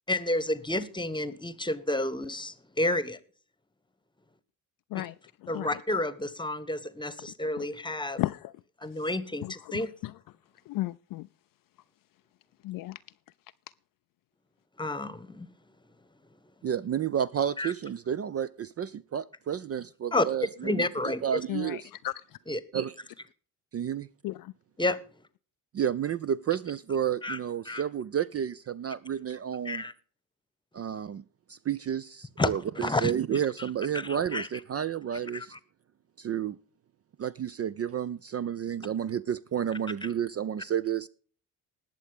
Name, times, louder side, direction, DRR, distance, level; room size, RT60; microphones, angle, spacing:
voice 1, 0.1-3.2 5.5-8.2 8.8-9.9 14.8-15.5 17.6-17.7 20.1-20.2 20.6-21.2 22.5-22.6 24.8-25.0 27.2-27.4 27.6-27.8 29.6-29.9 32.4-33.1 33.9-34.5 35.3-35.6, left 2 dB, 10° left, 1.2 m, -30 dB
voice 2, 5.4-5.8 7.6-7.7 8.2-8.5 9.4-10.1 10.7-11.3 12.6-13.0 21.5-22.4 24.2-24.5, left 17 dB, 45° left, 0.4 m, -35 dB
voice 3, 16.6-21.9 22.7-22.9 23.7-24.1 25.7-29.8 30.7-31.2 31.5-35.6 36.2-36.6 37.2-41.1, right 9 dB, 30° right, 0.5 m, -31 dB
20.0 x 7.4 x 3.6 m
hypercardioid pair, 50°, 49 cm